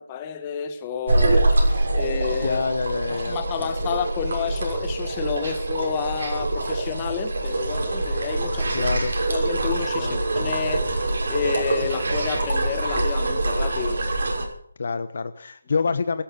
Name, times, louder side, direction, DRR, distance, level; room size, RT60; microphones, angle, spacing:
voice 1, 0.0-2.6 3.1-8.9 9.3-10.9 11.3-14.0, left 7 dB, 20° left, 7 dB, 1.9 m, -30 dB
sound 1, 1.1-14.5, right 2 dB, 65° right, 6.4 m, -24 dB
voice 2, 2.4-3.9 8.7-9.1 10.0-10.2 14.8-16.2, left 5 dB, 55° left, 11 dB, 1.2 m, -27 dB
18.0 x 14.5 x 5.6 m, 0.63 s
figure-of-eight pair, 165°, 0 cm